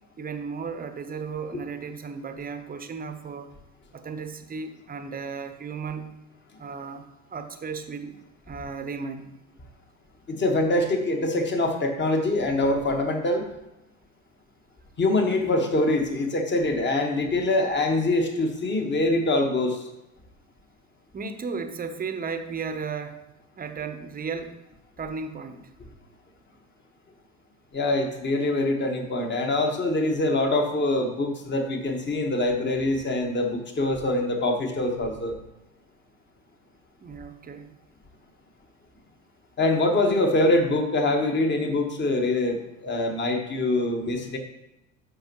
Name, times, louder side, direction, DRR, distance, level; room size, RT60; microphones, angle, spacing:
voice 1, 0.2-3.5 3.9-6.2 6.6-7.0 7.3-8.2 8.5-9.3 21.1-23.2 23.6-24.6 25.0-25.6 37.0-37.7, right 5 dB, 20° right, 8 dB, 0.9 m, -34 dB
voice 2, 10.3-13.5 15.0-19.8 27.7-35.4 39.6-44.4, left 2 dB, 25° left, 4 dB, 1.5 m, -24 dB
13.0 x 5.2 x 3.1 m, 0.93 s
figure-of-eight pair, 65°, 41 cm